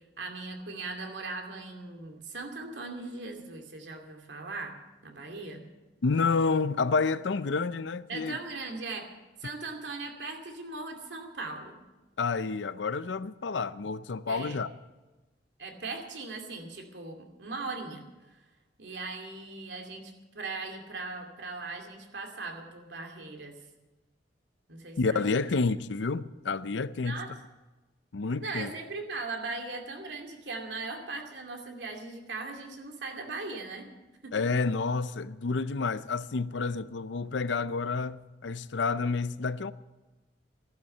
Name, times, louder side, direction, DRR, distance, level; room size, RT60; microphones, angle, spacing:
voice 1, 0.2-4.7 5.0-5.7 8.1-9.1 9.4-11.8 14.3-14.6 15.6-18.0 18.8-23.6 24.7-25.3 27.0-27.3 28.4-33.9 34.2-34.5, right 3 dB, 75° right, 2.5 m, -39 dB
voice 2, 6.0-8.4 12.2-14.7 25.0-27.2 28.1-28.7 34.3-39.7, left 4 dB, 85° left, 0.6 m, -29 dB
15.0 x 11.5 x 7.9 m
head